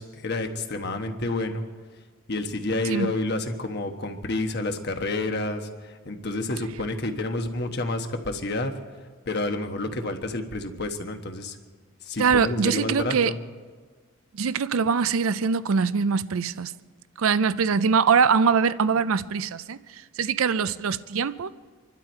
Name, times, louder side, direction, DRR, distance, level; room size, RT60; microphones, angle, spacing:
voice 1, 0.0-1.6 2.3-8.7 9.3-11.6 12.0-13.4, left 2 dB, 50° left, 1.2 m, -29 dB
voice 2, 12.2-13.3 14.4-16.7 17.2-21.5, right 5 dB, 80° right, 0.5 m, -23 dB
26.5 x 12.0 x 4.5 m
head